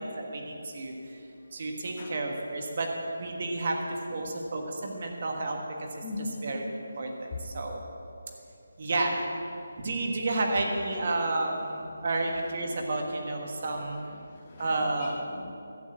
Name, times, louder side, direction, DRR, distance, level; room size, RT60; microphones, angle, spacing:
voice 1, 0.2-1.2 1.5-6.0 6.4-6.6 7.0-7.8 8.8-9.3 9.8-14.0 14.6-15.1, right 2 dB, 30° right, 2 dB, 1.4 m, -31 dB
voice 2, 0.7-1.2 1.9-2.3 4.1-4.6 6.0-6.7 7.2-7.5 10.6-12.6 12.9-13.2 13.6-15.5, left 2 dB, 20° left, -1 dB, 1.0 m, -43 dB
13.0 x 7.3 x 7.4 m, 2.7 s
figure-of-eight pair, 180°, 0 cm